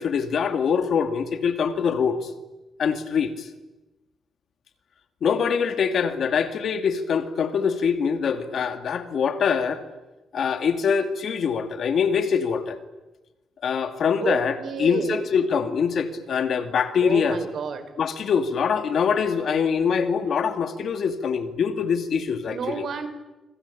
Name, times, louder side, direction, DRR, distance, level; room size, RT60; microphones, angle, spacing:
voice 1, 0.0-2.3 2.8-3.5 5.2-9.8 10.3-12.8 13.6-17.4 18.0-22.9, left 6 dB, 60° left, 9 dB, 2.6 m, -24 dB
voice 2, 14.2-15.3 17.0-17.9 22.5-23.1, right 6 dB, 60° right, 11 dB, 4.1 m, -30 dB
26.0 x 26.0 x 8.7 m, 1.1 s
cardioid pair, 95°, 0 cm